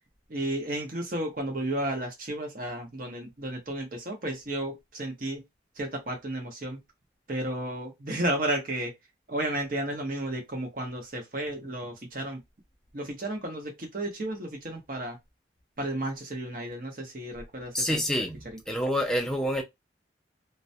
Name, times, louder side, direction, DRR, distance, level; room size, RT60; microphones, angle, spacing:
voice 1, 0.3-5.4 5.8-6.8 7.3-8.9 9.3-12.4 12.9-15.2 15.8-18.0 18.4-18.6, right 1 dB, 50° right, 0.8 m, -33 dB
voice 2, 17.7-19.6, equal, 5° left, 0.4 m, -28 dB
2.2 x 2.1 x 2.6 m
head